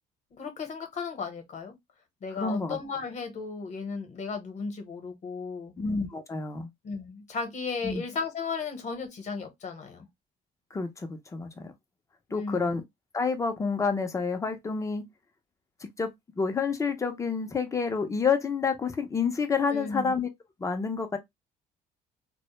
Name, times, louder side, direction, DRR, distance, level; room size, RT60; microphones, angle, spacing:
voice 1, 0.3-1.7 2.2-5.7 6.8-10.1 12.3-12.7 19.7-20.1, left 5 dB, 45° left, 0.9 m, -35 dB
voice 2, 2.3-2.8 5.8-6.7 7.8-8.0 10.7-11.7 12.3-12.8 13.1-15.0 15.8-20.3 20.6-21.2, left 5 dB, 20° left, 0.5 m, -29 dB
2.1 x 2.0 x 2.9 m
cardioid pair, 110°, 17 cm